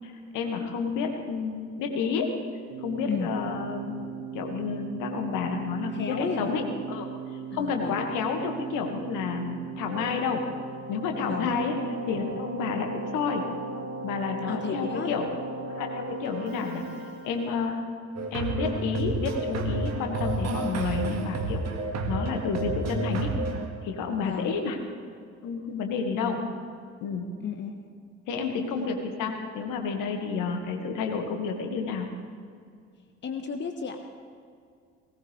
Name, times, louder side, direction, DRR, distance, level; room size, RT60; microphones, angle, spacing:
voice 1, 0.0-2.3 2.8-4.1 4.3-6.6 6.9-7.1 7.5-10.4 10.9-11.8 12.1-13.4 14.0-15.3 15.7-16.8 17.2-17.8 18.3-21.6 22.1-23.3 23.8-24.8 25.4-26.4 27.0-27.3 28.3-32.1, left 5 dB, 60° left, 3 dB, 1.9 m, -30 dB
Keyboard (musical), 2.7-17.7, right 4 dB, 65° right, 2.0 m, -38 dB
voice 2, 5.9-6.6 7.5-8.1 11.3-11.5 14.5-15.1 24.2-24.6 26.2-26.4 27.4-27.7 33.2-34.2, left 6 dB, 30° left, 5 dB, 1.2 m, -33 dB
sound 1, 18.2-23.7, right 3 dB, 45° right, 1.9 m, -30 dB
18.5 x 18.0 x 3.4 m, 2.2 s
figure-of-eight pair, 50°, 35 cm